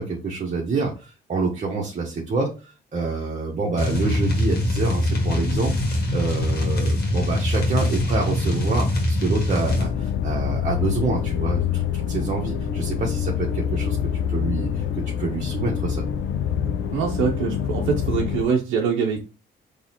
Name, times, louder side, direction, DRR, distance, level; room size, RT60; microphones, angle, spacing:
voice 1, 0.0-14.8 15.2-16.0, right 3 dB, 40° right, -1 dB, 1.1 m, -27 dB
sound 1, 3.8-9.9, left 1 dB, 50° left, 1.7 m, -23 dB
sound 2, 9.6-18.4, left 8 dB, 75° left, 0.6 m, -26 dB
voice 2, 16.9-19.2, right 6 dB, 90° right, 1 dB, 0.7 m, -23 dB
4.0 x 3.0 x 2.8 m, 0.32 s
cardioid pair, 90°, 20 cm